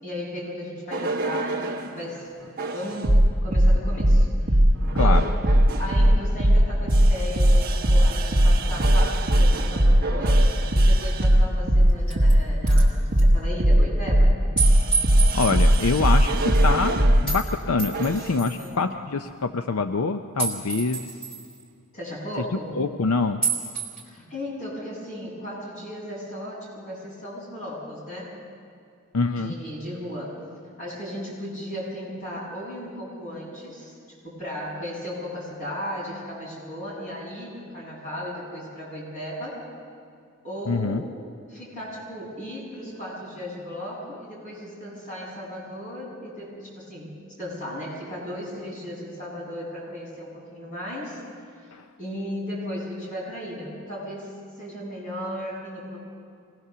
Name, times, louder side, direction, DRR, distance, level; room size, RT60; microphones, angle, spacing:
voice 1, 0.0-2.3 2.7-4.6 4.9-5.3 5.8-10.4 10.7-14.3 18.4-18.7 21.9-22.8 24.0-28.3 29.4-30.4 30.8-39.6 40.4-41.1 41.5-51.2 52.0-56.0, equal, 35° left, -5 dB, 7.1 m, -35 dB
sound 1, 0.9-1.9 2.6-17.3 17.9-18.3, right 1 dB, 40° right, 1.5 m, -19 dB
voice 2, 5.0-5.3 15.3-21.0 22.8-23.4 29.1-29.5 40.7-41.0 51.7-51.8, left 4 dB, 80° left, 8 dB, 0.6 m, -25 dB
sound 2, 11.2-11.3 11.9-12.3 12.7-12.8 13.2-13.3 14.6-16.0 17.3-17.4 17.8-18.7 20.4-21.5 23.4-24.0, right 5 dB, 5° left, 3.8 m, -29 dB
24.5 x 19.5 x 6.9 m, 2.3 s
head